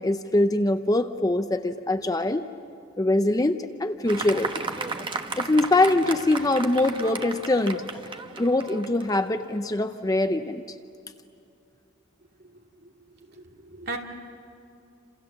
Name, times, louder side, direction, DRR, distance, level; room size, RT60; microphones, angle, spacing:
voice 1, 0.0-2.5 3.0-4.6 5.4-7.8 8.4-10.6, left 2 dB, 20° left, 8 dB, 0.6 m, -23 dB
Fireworks, 4.1-9.8, right 3 dB, 25° right, 1.1 m, -34 dB
voice 2, 13.4-14.0, right 3 dB, 50° right, 1 dB, 2.7 m, -36 dB
29.0 x 27.5 x 7.4 m, 2.7 s
head